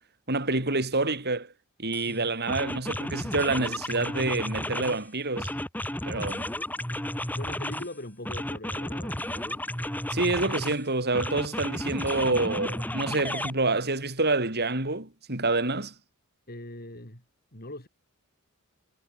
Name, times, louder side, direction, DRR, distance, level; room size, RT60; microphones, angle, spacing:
voice 1, 0.3-1.5 1.8-5.5 6.0-6.5 10.1-15.9, right 2 dB, 50° right, 6.9 m, -27 dB
sound 1, 1.9-2.1 2.5-5.0 5.4-7.9 8.3-10.8 11.1-13.5, left 1 dB, 10° left, 2.1 m, -33 dB
voice 2, 6.9-9.6 16.5-17.2 17.5-17.9, left 1 dB, 45° left, 7.6 m, -42 dB
head